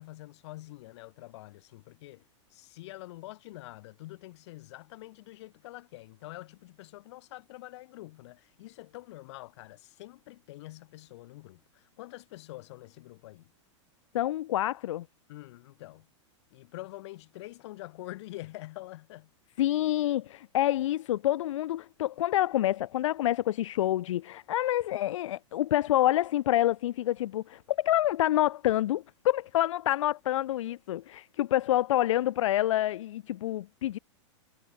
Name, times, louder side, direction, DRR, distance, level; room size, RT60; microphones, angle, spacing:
voice 1, 0.0-2.2 2.5-13.5 15.3-16.1 16.5-19.3, left 18 dB, 65° left, 7.2 m, -46 dB
voice 2, 14.1-15.1 19.6-34.0, left 13 dB, 80° left, 0.6 m, -27 dB
hypercardioid pair, 130°, 16 cm